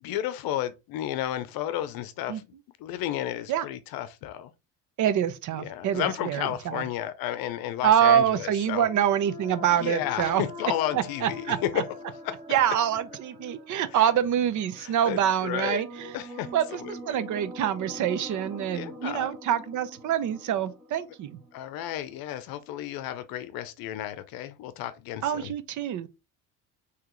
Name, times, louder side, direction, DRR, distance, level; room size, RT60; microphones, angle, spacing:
voice 1, 0.0-2.4 2.8-4.5 5.6-8.9 9.7-11.8 12.1-12.3 13.9-14.1 14.8-15.8 16.1-17.2 18.7-19.3 21.5-25.5, left 12 dB, 70° left, 0.7 m, -32 dB
voice 2, 5.0-6.8 7.8-10.4 10.9-11.8 12.5-16.1 16.5-21.4 25.2-26.1, right 10 dB, 50° right, 0.7 m, -26 dB
sound 1, 8.4-22.1, left 2 dB, 20° right, 1.7 m, -44 dB
5.9 x 3.0 x 3.0 m
cardioid pair, 120°, 37 cm